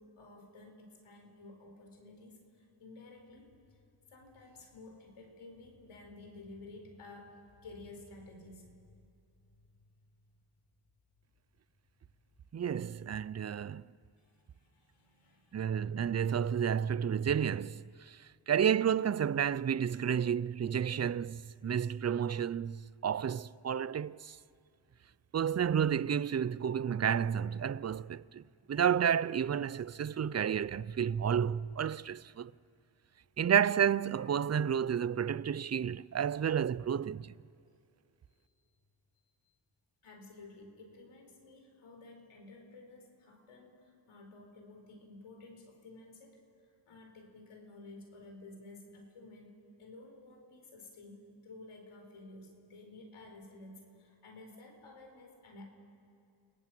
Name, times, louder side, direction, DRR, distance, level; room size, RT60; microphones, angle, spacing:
voice 1, 0.0-3.8 4.1-8.9 9.8-9.9 14.2-15.8 38.4-38.7 39.2-39.3 40.0-55.6, left 2 dB, 85° left, 4.5 m, -53 dB
voice 2, 12.5-13.9 15.5-24.4 25.3-28.4 28.7-32.5 33.4-37.3, right 8 dB, 35° right, 0.5 m, -31 dB
29.5 x 18.5 x 7.7 m
cardioid pair, 45°, 49 cm